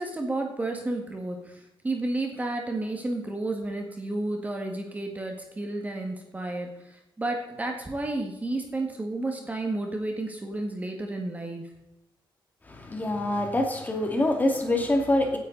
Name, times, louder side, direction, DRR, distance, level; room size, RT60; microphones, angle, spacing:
voice 1, 0.0-11.6, right 2 dB, 20° right, 3 dB, 1.8 m, -31 dB
voice 2, 12.7-15.4, left 1 dB, 20° left, 3 dB, 2.4 m, -25 dB
17.0 x 9.7 x 4.0 m, 0.93 s
wide cardioid pair, 155°, 8 cm